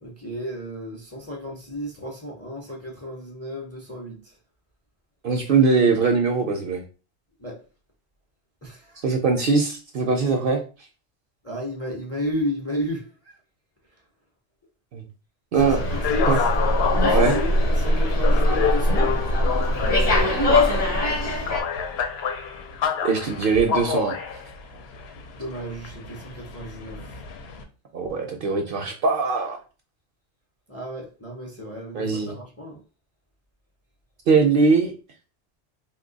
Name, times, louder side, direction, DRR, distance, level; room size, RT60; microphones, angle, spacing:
voice 1, 0.0-4.2 7.4-7.6 8.6-9.0 11.4-13.3 15.6-16.3 16.9-19.2 25.4-27.2 30.7-32.8, equal, 20° left, 0.5 m, -33 dB
voice 2, 5.2-6.8 9.0-10.6 14.9-15.0 15.5-15.9 16.3-16.4 17.1-17.4 23.0-24.2 27.9-29.6 31.9-32.4 34.3-34.9, right 4 dB, 60° right, 0.6 m, -21 dB
Slam, 15.6-21.6, left 1 dB, 35° left, 0.9 m, -21 dB
sound 1, 15.8-27.6, left 6 dB, 70° left, 0.8 m, -28 dB
2.8 x 2.2 x 3.9 m
omnidirectional pair, 1.2 m